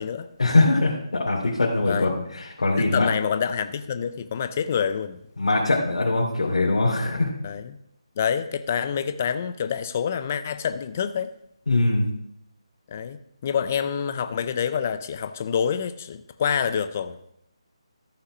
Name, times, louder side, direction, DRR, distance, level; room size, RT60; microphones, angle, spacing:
voice 1, 0.4-3.1 5.4-7.3 11.7-12.1, left 2 dB, 90° left, -4 dB, 2.6 m, -22 dB
voice 2, 2.8-5.2 7.4-7.8 8.2-11.3 12.9-17.2, left 7 dB, 20° left, 10 dB, 0.3 m, -27 dB
13.5 x 5.7 x 4.9 m, 0.75 s
hypercardioid pair, 175°, 3 cm